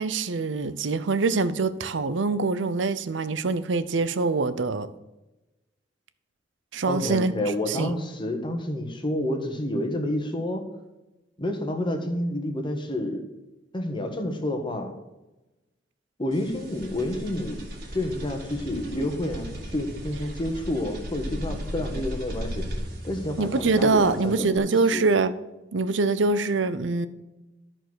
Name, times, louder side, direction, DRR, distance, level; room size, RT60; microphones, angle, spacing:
voice 1, 0.0-4.9 6.7-7.3 7.7-7.9 23.4-25.3 25.7-27.1, right 3 dB, 85° right, 0.6 m, -24 dB
voice 2, 6.9-10.6 11.4-13.2 13.7-14.9 16.2-17.6 17.9-22.7 23.0-25.0, left 1 dB, 25° left, 1.3 m, -29 dB
sound 1, 16.3-24.6, equal, 55° right, 2.5 m, -36 dB
13.0 x 4.5 x 6.3 m
head